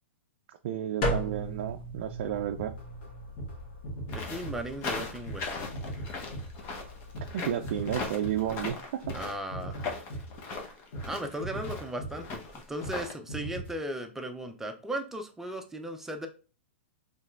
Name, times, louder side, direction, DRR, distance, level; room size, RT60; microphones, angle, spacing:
voice 1, 0.5-2.7 7.3-9.0, right 10 dB, 60° right, 6 dB, 0.4 m, -32 dB
sound 1, 1.0-7.2, equal, 50° left, 1.3 m, -37 dB
sound 2, 2.6-9.2 9.5-10.6 10.9-11.1 11.4-12.5 12.8-13.0 13.3-13.7, right 1 dB, 65° left, 1.5 m, -40 dB
sound 3, 4.1-13.1, left 4 dB, 35° left, 0.9 m, -38 dB
voice 2, 4.1-5.4 9.1-10.0 10.5-10.7 11.0-16.3, right 1 dB, 5° right, 5 dB, 0.5 m, -37 dB
4.1 x 3.2 x 2.4 m, 0.37 s
hypercardioid pair, 130°, 7 cm